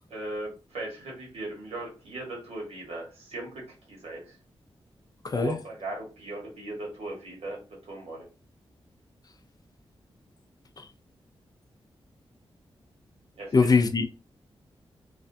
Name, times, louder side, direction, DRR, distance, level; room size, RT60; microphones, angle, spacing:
voice 1, 0.1-4.4 5.3-8.3 13.4-13.6, right 2 dB, 90° right, 1.2 m, -38 dB
voice 2, 5.2-5.6 13.5-14.1, left 4 dB, 40° left, 0.4 m, -21 dB
2.4 x 2.2 x 2.6 m
cardioid pair, 75°, 10 cm